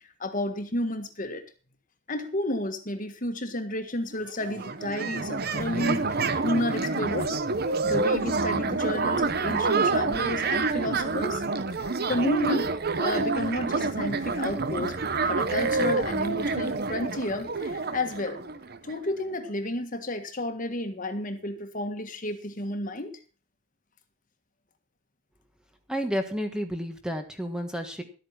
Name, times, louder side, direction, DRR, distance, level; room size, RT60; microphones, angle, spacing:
voice 1, 0.2-1.4 2.1-7.4 7.8-11.4 11.7-14.9 15.2-18.4 18.8-23.1, left 1 dB, 40° left, 8 dB, 1.6 m, -31 dB
sound 1, 4.1-4.2 4.4-19.0, right 3 dB, 50° right, 1.0 m, -28 dB
voice 2, 25.9-28.0, equal, 5° right, 6 dB, 1.4 m, -31 dB
12.5 x 8.7 x 5.9 m, 0.37 s
head